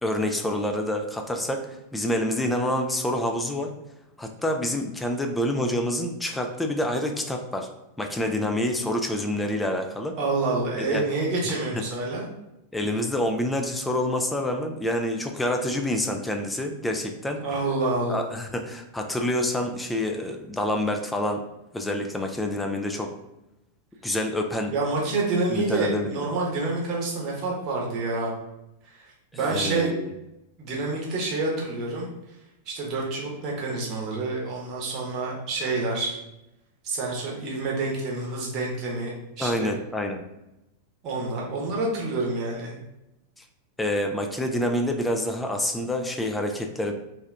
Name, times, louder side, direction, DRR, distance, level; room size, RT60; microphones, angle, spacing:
voice 1, 0.0-3.7 4.2-7.7 8.0-10.2 10.8-11.0 11.5-11.6 12.7-17.4 18.1-21.4 21.7-23.1 24.0-24.7 25.5-26.2 29.4-30.1 39.4-40.2 43.4-43.5 43.8-46.9, left 1 dB, 5° left, 3 dB, 0.4 m, -27 dB
voice 2, 10.2-12.3 17.3-18.2 24.7-28.3 28.8-29.1 29.3-29.9 30.6-32.1 32.7-36.1 36.8-39.7 41.0-42.7, right 3 dB, 35° right, -3 dB, 0.9 m, -28 dB
2.7 x 2.3 x 3.2 m, 0.92 s
figure-of-eight pair, 90°, 0 cm